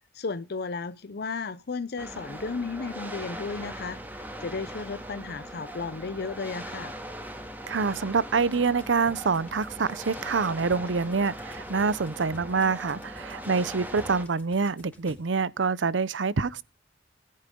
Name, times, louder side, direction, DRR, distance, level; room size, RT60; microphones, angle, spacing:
voice 1, 0.1-6.9, left 4 dB, 60° left, 0.6 m, -34 dB
sound 1, 2.0-14.2, right 1 dB, 10° right, 2.4 m, -40 dB
voice 2, 7.7-16.6, right 4 dB, 80° right, 0.7 m, -26 dB
sound 2, 8.3-15.6, equal, 10° left, 3.7 m, -52 dB
20.0 x 9.6 x 3.7 m
head